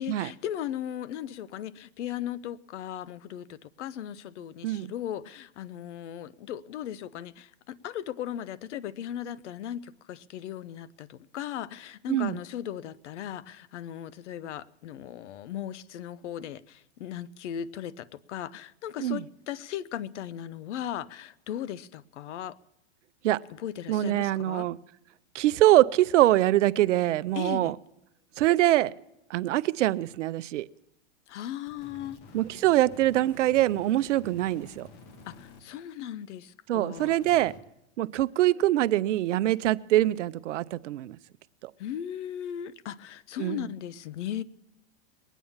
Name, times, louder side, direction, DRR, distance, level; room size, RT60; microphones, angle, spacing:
voice 1, 0.0-22.6 23.5-24.7 27.3-27.7 31.3-32.2 35.3-37.1 41.8-44.4, left 10 dB, 75° left, 0.8 m, -37 dB
voice 2, 12.1-12.4 19.0-19.2 23.2-23.4 23.9-24.8 25.3-27.7 28.4-28.9 29.3-30.7 32.3-34.9 36.7-37.5 38.0-41.2 43.4-43.6, right 14 dB, 80° right, 0.7 m, -24 dB
sound 1, 31.7-35.6 37.0-37.6, left 3 dB, 45° left, 2.2 m, -50 dB
21.0 x 9.2 x 7.2 m
hypercardioid pair, 130°, 36 cm